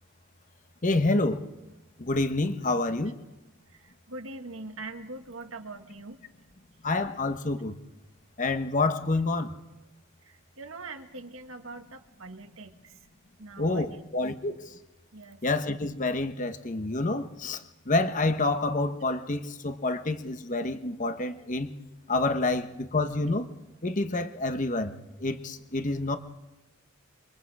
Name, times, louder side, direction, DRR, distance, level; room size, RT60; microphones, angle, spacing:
voice 1, 0.8-1.4 2.0-3.2 6.8-7.8 8.4-9.5 13.6-14.8 15.4-21.7 22.1-23.5 23.8-26.2, left 2 dB, 40° left, 9 dB, 1.2 m, -28 dB
voice 2, 3.7-6.2 10.2-13.1 13.4-14.0 15.1-15.4, right 2 dB, 70° right, 6 dB, 1.7 m, -43 dB
27.0 x 24.5 x 4.9 m, 1.0 s
head